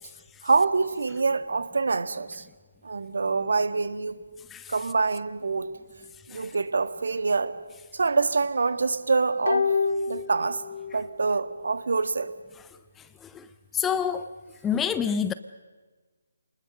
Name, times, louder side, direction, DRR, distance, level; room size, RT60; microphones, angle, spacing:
voice 1, 0.4-2.5 2.8-4.2 4.7-5.7 6.3-7.5 7.9-9.8 10.1-10.6 10.9-12.3, right 4 dB, 60° right, 1.6 m, -25 dB
sound 1, 9.5-11.1 11.4-11.5, left 5 dB, 60° left, 2.6 m, -27 dB
voice 2, 13.7-14.3 14.6-15.3, left 7 dB, 10° left, 0.6 m, -27 dB
29.5 x 20.5 x 6.6 m
figure-of-eight pair, 145°, 0 cm